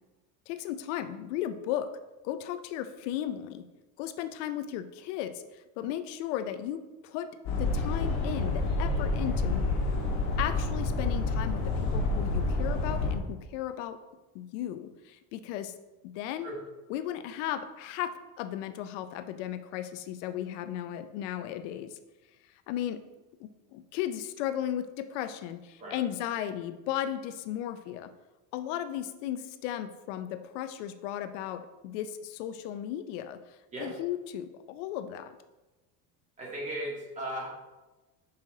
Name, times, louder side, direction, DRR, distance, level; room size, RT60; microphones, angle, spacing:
voice 1, 0.5-1.9 2.2-3.6 4.0-7.3 7.6-9.7 10.4-11.6 11.9-14.0 14.3-15.7 16.0-16.5 16.9-18.1 18.4-21.9 22.7-23.0 23.4-28.1 28.5-35.3, left 11 dB, 80° left, 11 dB, 0.6 m, -35 dB
sound 1, 7.5-13.1, left 2 dB, 50° left, 1.6 m, -28 dB
voice 2, 36.4-37.5, right 1 dB, 20° right, -4 dB, 1.9 m, -36 dB
6.3 x 5.7 x 3.7 m, 1.1 s
cardioid pair, 165°, 36 cm